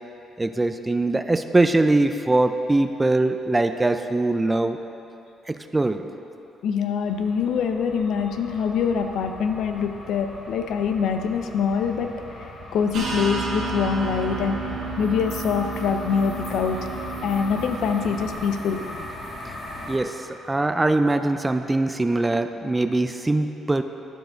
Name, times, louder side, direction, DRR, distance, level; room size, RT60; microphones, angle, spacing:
voice 1, 0.4-4.8 5.5-6.1 19.4-19.5 19.9-23.8, right 2 dB, 15° right, 8 dB, 0.3 m, -22 dB
voice 2, 6.6-12.1 12.4-14.6 15.0-16.8 17.2-18.8, left 6 dB, 75° left, 7 dB, 0.5 m, -24 dB
sound 1, 7.0-20.0, left 1 dB, 55° left, 1.5 m, -39 dB
sound 2, 12.9-18.3, right 3 dB, 65° right, 1.5 m, -32 dB
12.0 x 4.8 x 3.8 m, 2.8 s
cardioid pair, 95°, 0 cm